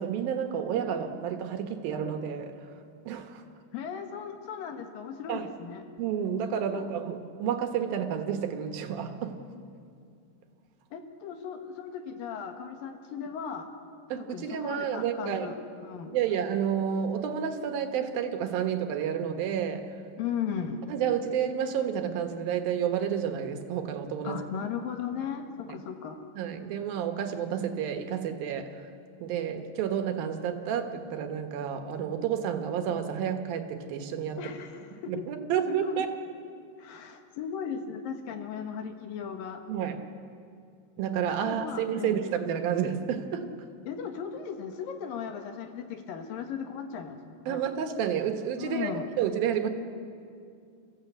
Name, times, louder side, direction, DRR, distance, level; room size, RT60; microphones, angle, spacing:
voice 1, 0.0-2.5 3.1-3.4 5.3-5.5 6.0-9.4 14.1-15.5 16.1-19.9 20.9-24.4 25.7-25.8 26.4-28.8 29.2-34.4 35.1-36.1 39.7-40.0 41.0-43.5 47.5-48.9 49.2-49.7, right 8 dB, 80° right, 6 dB, 3.1 m, -30 dB
voice 2, 3.7-5.8 6.7-6.8 10.9-13.7 14.2-16.2 20.2-20.8 24.2-26.2 34.4-35.2 35.7-36.1 36.8-39.6 41.4-42.2 43.9-47.6 48.6-49.1, left 7 dB, 75° left, 5 dB, 3.1 m, -37 dB
28.0 x 15.0 x 8.1 m, 2.4 s
omnidirectional pair, 4.2 m